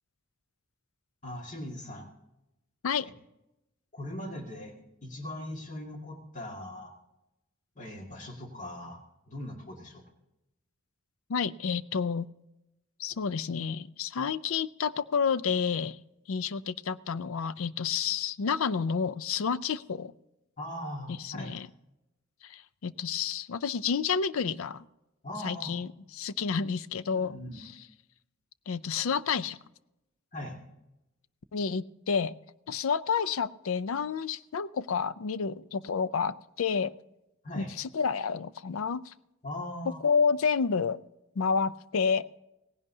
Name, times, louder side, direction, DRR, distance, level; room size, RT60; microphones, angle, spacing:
voice 1, 1.2-2.1 3.9-4.7 5.0-6.9 7.8-10.0 20.6-21.5 25.2-25.8 27.1-27.7 30.3-30.6 37.4-37.7 39.4-40.0, left 1 dB, 35° left, 1 dB, 2.0 m, -40 dB
voice 2, 11.3-12.3 13.0-16.0 16.3-20.1 21.2-21.7 22.4-24.8 25.4-25.9 26.2-27.7 28.7-29.6 31.5-32.3 32.7-36.9 37.6-39.1 40.0-41.0 41.4-42.3, left 6 dB, 75° left, 16 dB, 0.5 m, -29 dB
17.5 x 16.0 x 2.8 m, 0.92 s
head